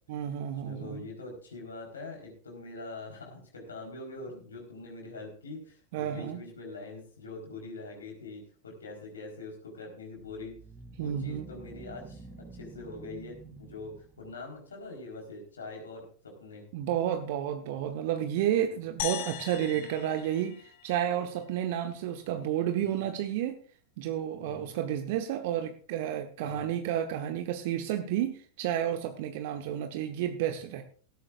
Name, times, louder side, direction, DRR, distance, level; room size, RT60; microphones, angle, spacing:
voice 1, 0.1-1.0 5.9-6.4 11.0-11.5 16.7-23.6 24.0-30.8, right 10 dB, 50° right, 7 dB, 1.1 m, -31 dB
voice 2, 0.6-10.5 11.0-12.2 12.5-16.6 19.7-19.9 22.7-23.0 24.4-24.7 26.4-26.7, left 2 dB, 70° left, 0 dB, 4.2 m, -43 dB
sound 1, 10.2-14.6, right 3 dB, 15° right, 2.5 m, -49 dB
sound 2, 19.0-21.4, left 14 dB, 50° left, 1.0 m, -39 dB
16.5 x 14.0 x 2.5 m, 0.43 s
figure-of-eight pair, 90°, 0 cm